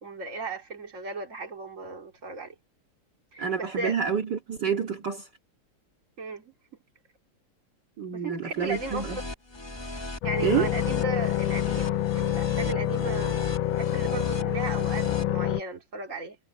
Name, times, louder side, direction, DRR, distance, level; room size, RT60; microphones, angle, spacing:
voice 1, 0.0-2.5 3.3-4.0 6.2-6.5 8.1-9.3 10.2-13.4 13.7-16.4, right 3 dB, 35° right, 3.0 m, -35 dB
voice 2, 3.4-5.3 8.0-9.2 10.4-10.7, right 7 dB, 55° right, 2.6 m, -28 dB
sound 1, 8.6-15.2, left 2 dB, 15° left, 1.2 m, -38 dB
sound 2, 10.2-15.6, left 13 dB, 75° left, 1.5 m, -27 dB
omnidirectional pair, 2.3 m